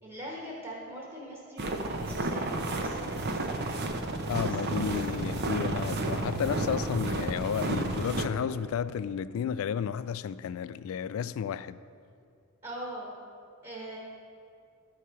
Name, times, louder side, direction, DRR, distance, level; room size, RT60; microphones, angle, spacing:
voice 1, 0.0-3.8 4.4-5.4 12.6-13.1 13.6-14.0, right 1 dB, 25° right, 1.4 m, -43 dB
sound 1, 1.6-8.3, right 2 dB, 50° right, 0.7 m, -31 dB
voice 2, 4.3-11.8, left 7 dB, 70° left, 0.3 m, -32 dB
13.0 x 4.8 x 5.6 m
head